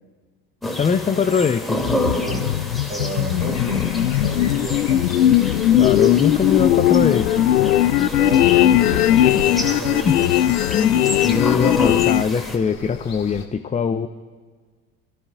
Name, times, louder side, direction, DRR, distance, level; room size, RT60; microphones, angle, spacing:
sound 1, 0.6-12.6, left 2 dB, ahead, 2.6 m, -29 dB
voice 1, 0.8-1.9 5.8-7.5 10.0-10.2 10.7-14.1, left 6 dB, 15° left, 8 dB, 0.7 m, -22 dB
sound 2, 1.8-12.2, left 13 dB, 80° left, 0.5 m, -18 dB
voice 2, 2.2-2.5 2.9-5.1 7.9-10.3, right 2 dB, 25° right, 0 dB, 4.9 m, -32 dB
sound 3, 3.4-13.4, left 5 dB, 35° left, 2.2 m, -39 dB
27.5 x 14.0 x 2.5 m, 1.5 s
figure-of-eight pair, 60°, 45 cm